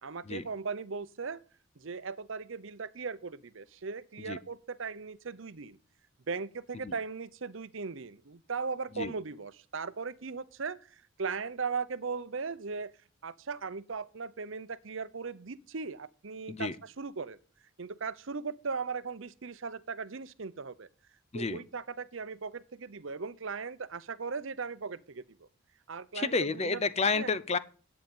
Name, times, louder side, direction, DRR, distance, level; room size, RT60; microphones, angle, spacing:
voice 1, 0.0-1.4 1.8-5.8 6.3-12.9 13.2-17.4 17.8-20.9 21.3-25.5 25.9-26.8 27.1-27.4, right 5 dB, 65° right, 0.7 m, -38 dB
voice 2, 26.1-27.6, left 4 dB, 30° left, 0.6 m, -30 dB
10.5 x 8.7 x 5.3 m
head